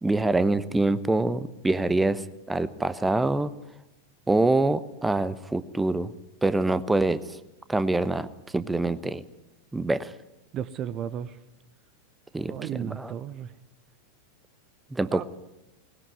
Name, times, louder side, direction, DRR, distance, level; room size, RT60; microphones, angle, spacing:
voice 1, 0.0-2.2 2.5-3.5 4.3-6.1 6.4-7.4 7.7-8.3 8.5-9.2 9.7-10.1 12.3-13.1 14.9-15.2, right 2 dB, 10° right, 14 dB, 1.0 m, -25 dB
voice 2, 10.5-11.4 12.4-13.5 15.1-15.2, right 9 dB, 35° right, 16 dB, 0.9 m, -34 dB
20.5 x 20.0 x 9.6 m, 0.89 s
figure-of-eight pair, 90°, 0 cm